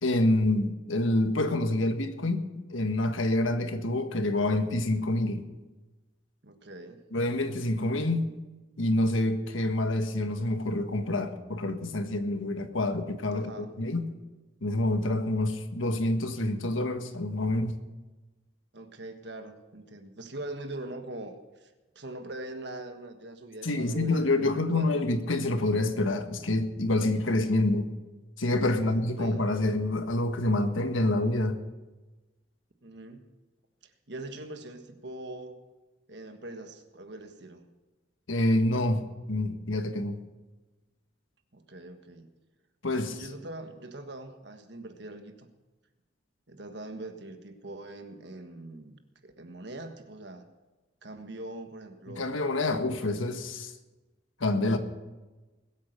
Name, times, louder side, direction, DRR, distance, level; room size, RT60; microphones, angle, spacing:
voice 1, 0.0-5.4 7.1-8.3 8.8-13.5 13.8-14.1 14.6-17.8 23.6-27.9 28.4-31.6 38.3-40.2 42.8-43.2 52.1-53.7 54.4-54.8, left 1 dB, 90° left, 7 dB, 1.5 m, -27 dB
voice 2, 6.4-7.0 13.3-13.7 18.7-24.9 28.6-29.5 32.8-33.2 33.8-35.6 36.1-37.7 41.5-42.3 43.0-45.5 46.5-50.4 51.0-52.4, right 2 dB, 60° right, 7 dB, 1.5 m, -42 dB
20.5 x 8.9 x 6.7 m, 1.2 s
head